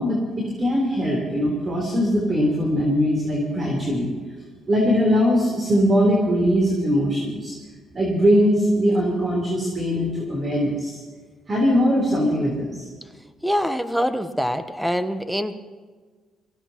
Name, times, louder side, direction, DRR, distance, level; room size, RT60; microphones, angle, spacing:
voice 1, 0.0-4.1 4.7-7.5 7.9-11.0 11.5-12.9, equal, 35° right, -2 dB, 3.8 m, -21 dB
voice 2, 13.4-15.6, equal, ahead, 10 dB, 1.1 m, -24 dB
24.0 x 16.5 x 3.0 m, 1.4 s
cardioid pair, 90°, 0 cm